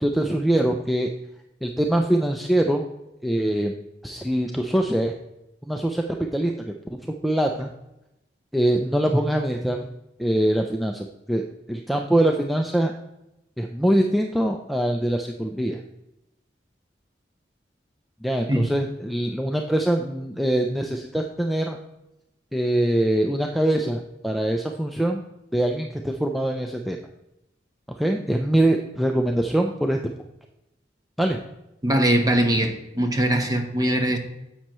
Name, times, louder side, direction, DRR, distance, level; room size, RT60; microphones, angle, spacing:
voice 1, 0.0-1.1 1.6-2.8 3.2-3.7 4.0-5.1 5.6-6.7 7.0-7.7 8.5-9.9 10.2-11.4 11.7-12.9 13.6-15.8 18.2-21.8 22.5-25.2 25.5-27.0 28.0-30.0 31.2-31.4, right 1 dB, ahead, 2 dB, 0.4 m, -23 dB
voice 2, 31.8-34.2, right 1 dB, 20° right, 4 dB, 1.0 m, -21 dB
9.9 x 7.4 x 3.0 m, 0.91 s
head